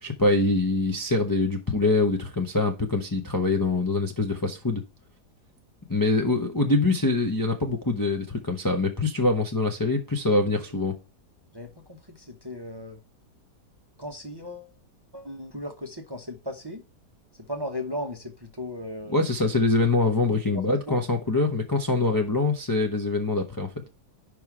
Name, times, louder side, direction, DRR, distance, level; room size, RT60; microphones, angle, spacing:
voice 1, 0.0-4.8 5.9-11.0 19.1-23.7, left 3 dB, 20° left, 0.6 m, -24 dB
voice 2, 11.5-13.0 14.0-14.7 15.1-16.8 17.4-19.3 20.5-20.6 20.9-21.0, left 1 dB, 20° right, 0.8 m, -36 dB
5.4 x 4.7 x 6.0 m
omnidirectional pair, 1.7 m